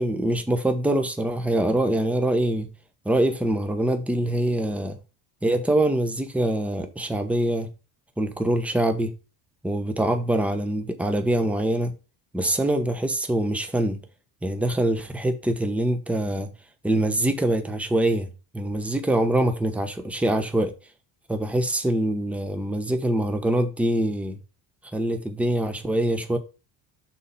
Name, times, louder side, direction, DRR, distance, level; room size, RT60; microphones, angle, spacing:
voice 1, 0.0-2.7 3.0-5.0 5.4-7.7 8.2-9.1 9.6-11.9 12.3-14.0 14.4-16.5 16.8-20.7 21.3-24.4 24.9-26.4, right 1 dB, 5° right, 0.9 m, -24 dB
6.2 x 4.2 x 5.4 m
cardioid pair, 100°, 50 cm